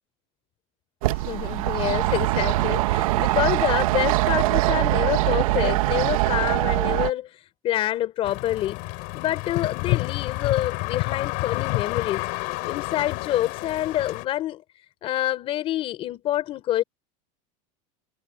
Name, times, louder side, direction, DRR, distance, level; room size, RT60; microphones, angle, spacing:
sound 1, 1.0-7.1, right 17 dB, 90° right, 1.8 m, -22 dB
voice 1, 1.1-8.8 9.1-12.3 12.7-14.6 15.0-16.8, left 13 dB, 35° left, 4.2 m, -27 dB
sound 2, 8.2-14.2, left 26 dB, 50° left, 5.1 m, -29 dB
cardioid pair, 170°, 17 cm